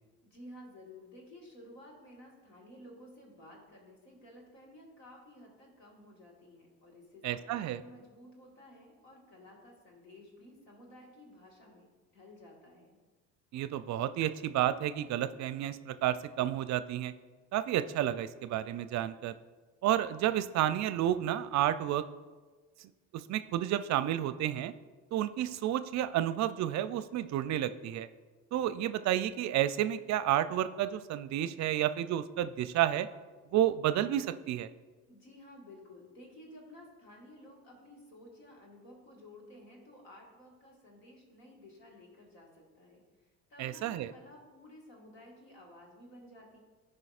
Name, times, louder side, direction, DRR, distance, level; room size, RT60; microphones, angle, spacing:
voice 1, 0.2-13.0 35.1-46.6, left 1 dB, 85° left, -1 dB, 1.7 m, -54 dB
voice 2, 7.2-7.8 13.5-17.1 17.5-19.3 19.8-22.0 22.8-24.7 25.1-28.1 28.5-33.1 33.5-34.7 43.6-44.1, right 12 dB, 45° right, 13 dB, 0.4 m, -31 dB
14.5 x 4.9 x 2.4 m, 1.4 s
hypercardioid pair, 65°, 39 cm